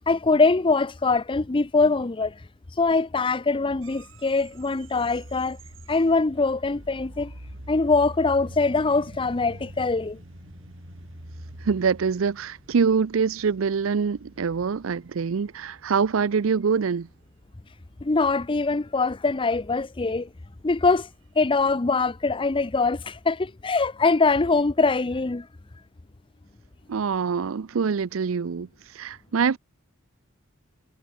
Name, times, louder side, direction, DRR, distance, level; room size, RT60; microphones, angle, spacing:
voice 1, 0.1-2.3 2.8-5.6 5.9-7.3 7.7-10.2 18.0-20.3 20.6-21.1 21.4-25.5, left 3 dB, 25° left, 0.6 m, -23 dB
sound 1, 3.8-23.4, right 1 dB, 70° right, 4.3 m, -46 dB
voice 2, 11.6-17.1 26.9-28.7 28.9-29.6, right 5 dB, 90° right, 0.5 m, -24 dB
head